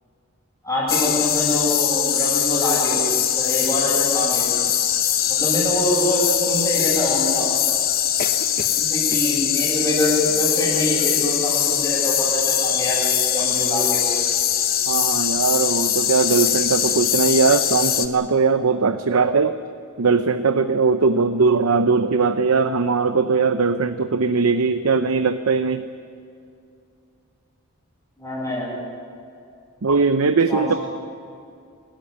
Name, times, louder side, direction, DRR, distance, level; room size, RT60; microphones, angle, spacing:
voice 1, 0.6-3.0 3.3-4.4 5.3-7.5 8.8-14.0 28.2-28.7 30.5-30.8, equal, 15° left, -10 dB, 7.9 m, -24 dB
sound 1, 0.9-18.1, left 10 dB, 45° left, 1.1 m, -21 dB
voice 2, 14.9-19.6 20.0-25.8 29.8-30.7, right 4 dB, 85° right, 9 dB, 0.7 m, -20 dB
26.0 x 14.0 x 9.7 m, 2.4 s
head